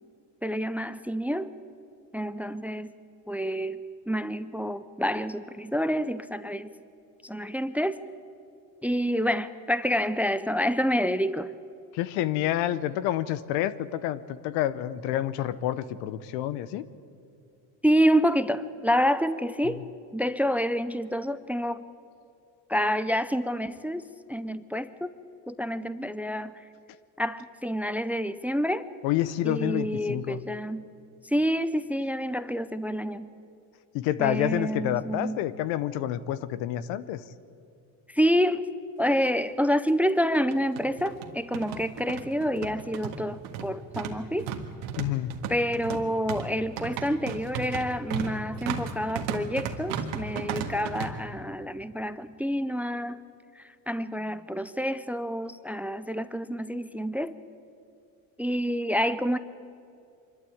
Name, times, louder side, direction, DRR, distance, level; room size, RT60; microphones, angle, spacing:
voice 1, 0.4-1.5 2.1-2.9 3.3-3.8 4.1-6.7 7.2-8.0 8.8-11.5 17.8-19.8 20.1-21.8 22.7-24.0 24.3-25.1 25.5-26.5 27.2-28.9 29.4-30.8 31.2-33.3 34.2-35.4 38.1-38.7 39.0-44.5 45.5-53.2 53.6-57.3 58.4-59.4, equal, 5° right, 14 dB, 0.5 m, -28 dB
voice 2, 11.9-16.9 29.0-30.4 33.9-37.2 45.0-45.3, left 12 dB, 80° left, 16 dB, 1.0 m, -28 dB
sound 1, 39.0-39.1 39.4-39.5 40.3-51.1, right 7 dB, 80° right, 1.8 m, -35 dB
24.5 x 12.5 x 8.6 m, 2.5 s
supercardioid pair, 90°, 45 cm